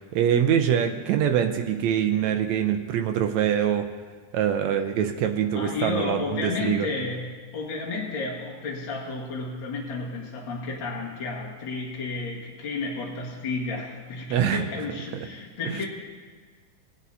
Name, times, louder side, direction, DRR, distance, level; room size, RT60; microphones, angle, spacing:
voice 1, 0.0-3.9 4.3-6.9 14.3-14.6 15.7-15.8, right 9 dB, 75° right, 5 dB, 1.7 m, -24 dB
voice 2, 5.5-15.9, left 3 dB, 45° left, -4 dB, 2.0 m, -32 dB
20.5 x 8.3 x 2.7 m, 1.5 s
omnidirectional pair, 3.6 m